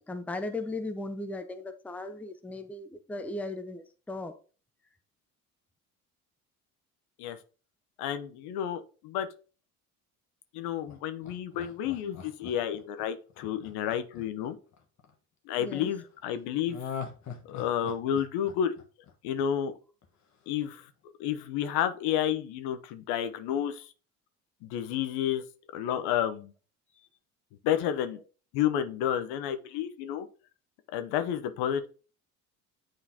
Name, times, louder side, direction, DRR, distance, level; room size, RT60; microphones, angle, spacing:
voice 1, 0.0-4.4 15.6-15.9, left 2 dB, 5° left, 0.6 m, -37 dB
voice 2, 8.0-9.3 10.5-14.6 15.5-16.8 17.4-18.7 19.2-19.7 20.5-20.9 21.2-23.9 24.6-25.4 25.7-26.5 27.6-28.2 28.5-30.3 30.9-31.9, left 10 dB, 65° left, 0.8 m, -30 dB
Laughter, 10.9-15.1 16.7-19.7 20.0-20.1, left 7 dB, 40° left, 1.3 m, -42 dB
8.9 x 3.9 x 2.8 m
hypercardioid pair, 60°, 43 cm